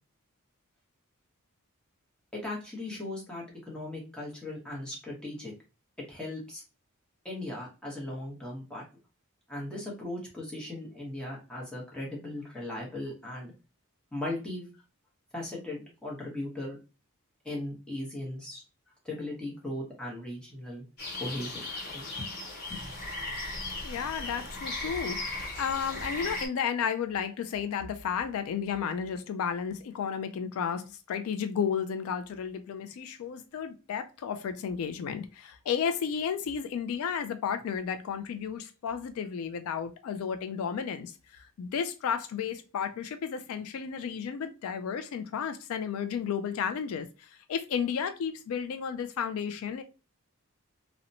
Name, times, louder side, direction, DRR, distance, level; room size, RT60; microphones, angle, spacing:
voice 1, 2.3-5.5 6.1-6.6 7.2-8.8 9.5-13.5 14.1-14.7 15.3-16.8 17.4-18.6 19.0-20.8 21.2-22.3 22.7-22.8, left 1 dB, 5° left, 0.8 m, -38 dB
sound 1, 21.0-26.5, left 2 dB, 45° left, 1.0 m, -37 dB
voice 2, 23.8-49.8, left 7 dB, 75° left, 0.3 m, -33 dB
2.8 x 2.1 x 2.6 m
head